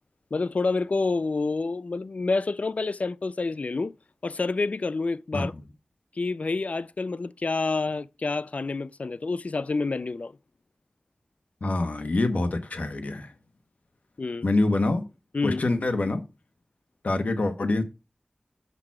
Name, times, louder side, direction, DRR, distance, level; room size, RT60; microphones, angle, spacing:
voice 1, 0.3-3.9 4.2-5.5 6.2-10.3 14.2-14.5 15.3-15.6, left 3 dB, 70° left, 0.4 m, -28 dB
voice 2, 11.6-13.3 14.4-15.0 15.4-16.2 17.0-17.8, left 2 dB, 85° left, 1.2 m, -25 dB
6.8 x 6.0 x 4.7 m
wide cardioid pair, 45°, 2 cm